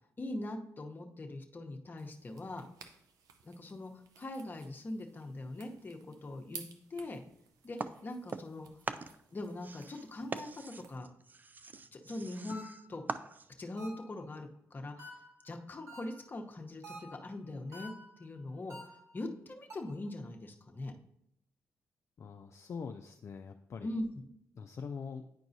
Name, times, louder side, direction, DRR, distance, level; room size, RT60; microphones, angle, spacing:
voice 1, 0.2-2.6 3.4-6.6 6.9-7.2 7.6-8.7 9.3-11.1 11.9-12.6 12.9-13.0 13.6-17.9 18.2-20.9 23.8-24.2, left 2 dB, 35° left, 2 dB, 0.9 m, -42 dB
sound 1, 2.0-11.0, right 6 dB, 90° right, 0.6 m, -56 dB
sound 2, 7.8-8.6 8.8-13.7, right 4 dB, 30° right, 0.3 m, -42 dB
sound 3, 12.5-13.0 13.8-14.2 15.0-15.4 15.9-16.3 16.8-17.3 17.7-18.2 18.7-19.2 19.7-20.1, equal, 70° right, 2.0 m, -49 dB
voice 2, 22.2-23.9 24.6-25.2, left 5 dB, 55° left, 4 dB, 0.4 m, -43 dB
9.6 x 4.6 x 2.7 m, 0.75 s
cardioid pair, 75°, 6 cm